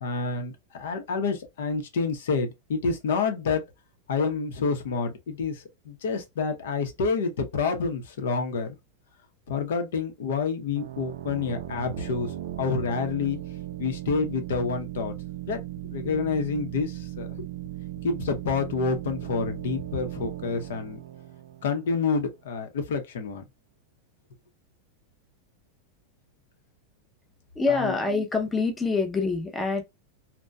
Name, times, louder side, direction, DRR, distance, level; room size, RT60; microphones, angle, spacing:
voice 1, 0.0-3.6 4.1-8.7 9.5-12.3 12.6-13.4 13.8-15.1 15.5-15.6 15.9-17.3 18.0-21.0 21.6-23.4 27.7-27.9, left 4 dB, 80° left, 0.8 m, -28 dB
sound 1, 10.8-22.3, right 13 dB, 70° right, 0.5 m, -37 dB
voice 2, 27.5-29.8, left 4 dB, 10° left, 0.5 m, -25 dB
2.6 x 2.1 x 2.2 m
supercardioid pair, 165°, 0 cm